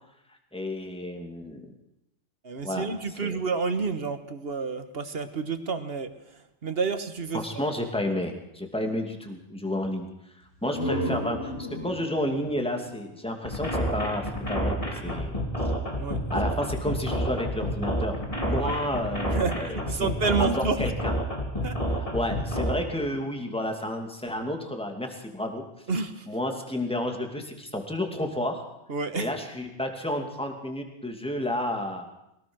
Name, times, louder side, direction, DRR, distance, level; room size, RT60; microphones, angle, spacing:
voice 1, 0.5-1.7 2.6-3.4 7.3-10.1 10.6-11.5 11.8-15.3 16.3-18.1 18.4-20.1 20.4-21.2 21.9-25.6 26.3-28.6 29.1-32.1, left 1 dB, 5° left, 3 dB, 2.5 m, -31 dB
voice 2, 2.4-6.1 6.6-7.4 16.0-16.2 18.6-18.8 19.3-20.8 21.6-21.8 25.9-26.3 28.9-29.3, right 4 dB, 55° right, 10 dB, 1.5 m, -29 dB
sound 1, 10.4-14.1, equal, 90° left, 4.7 m, -34 dB
sound 2, 13.4-22.7, equal, 30° left, 3.2 m, -29 dB
23.0 x 18.0 x 6.3 m, 0.85 s
omnidirectional pair, 1.2 m